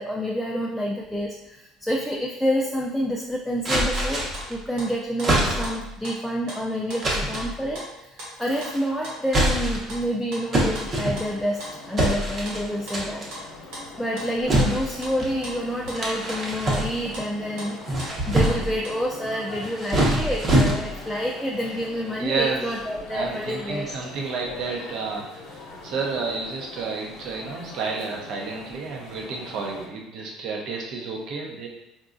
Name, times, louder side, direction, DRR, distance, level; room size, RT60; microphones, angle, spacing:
voice 1, 0.0-13.3 14.0-23.9, equal, ahead, -3 dB, 0.3 m, -28 dB
sound 1, 3.6-4.5 5.2-5.9 7.0-7.5 8.5-8.9 9.3-10.0 10.5-11.5 12.0-12.6 12.9-13.4 14.5-15.3 15.9-17.2 17.7-18.8 19.5-21.1, right 1 dB, 30° right, 0.8 m, -24 dB
sound 2, 3.9-4.9 5.2-5.8 6.0-7.5 7.7-8.3 8.6-9.2 9.5-10.0 10.3-11.3 11.6-14.3 14.6-14.7 15.0-16.0 16.3-16.4 16.7-18.1 18.4-18.9, equal, 80° right, 1.1 m, -39 dB
sound 3, 10.8-29.9, left 2 dB, 70° left, 0.6 m, -42 dB
voice 2, 22.2-22.6 23.1-31.7, right 4 dB, 60° right, 0 dB, 0.7 m, -30 dB
3.8 x 2.2 x 2.5 m, 0.90 s
cardioid pair, 135°, 0 cm